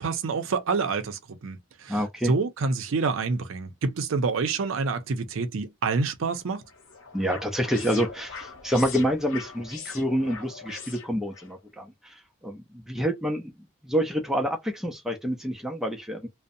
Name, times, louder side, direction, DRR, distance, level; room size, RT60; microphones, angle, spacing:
voice 1, 0.0-6.6, right 4 dB, 80° right, 0.5 m, -27 dB
voice 2, 1.9-2.3 7.1-12.2 12.4-13.5 13.8-16.3, equal, ahead, 0.4 m, -27 dB
sound 1, 6.3-11.5, left 5 dB, 85° left, 0.7 m, -42 dB
2.5 x 2.0 x 2.6 m
head